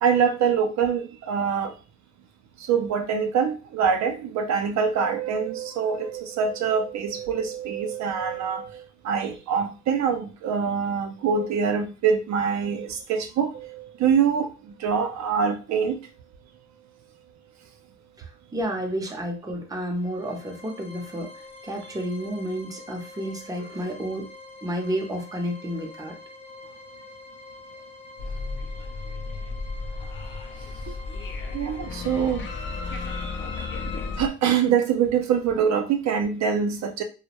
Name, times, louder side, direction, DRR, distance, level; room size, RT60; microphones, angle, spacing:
voice 1, 0.0-1.7 2.7-14.5 14.8-16.0 31.5-32.5 33.1-33.9 34.2-37.0, right 7 dB, 65° right, 5 dB, 0.4 m, -24 dB
voice 2, 18.2-24.3 24.6-26.2, equal, 10° right, 3 dB, 0.5 m, -31 dB
sound 1, 19.9-34.1, left 3 dB, 20° left, 0.8 m, -45 dB
sound 2, 28.2-34.3, left 3 dB, 40° left, 0.4 m, -33 dB
2.1 x 2.0 x 2.8 m, 0.33 s
cardioid pair, 90°, 30 cm